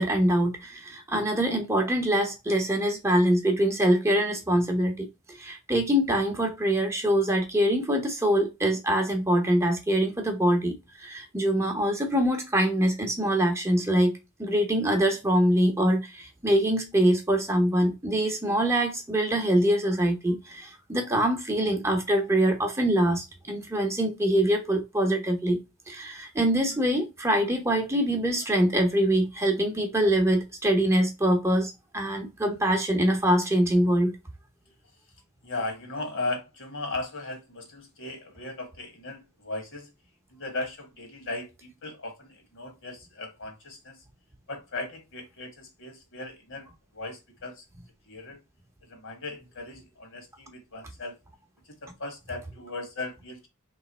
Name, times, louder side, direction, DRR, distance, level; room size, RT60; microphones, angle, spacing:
voice 1, 0.0-25.6 25.9-34.1, right 1 dB, 15° right, 0.8 m, -24 dB
voice 2, 35.4-39.9 40.3-44.0 44.5-46.7 46.9-47.6 48.1-48.4 48.9-51.2 51.7-53.5, left 2 dB, 60° left, 1.5 m, -37 dB
3.3 x 3.1 x 4.1 m
head